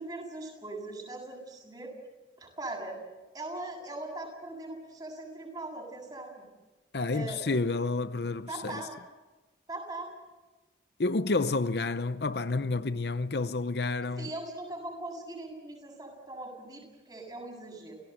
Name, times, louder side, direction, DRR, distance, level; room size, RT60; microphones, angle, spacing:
voice 1, 0.0-1.9 2.4-3.0 3.3-6.4 7.1-7.4 8.5-9.0 9.7-10.1 14.2-17.9, right 2 dB, 20° right, 7.7 m, -40 dB
voice 2, 6.9-8.8 11.0-14.3, left 3 dB, 65° left, 0.7 m, -30 dB
30.0 x 17.5 x 8.1 m
head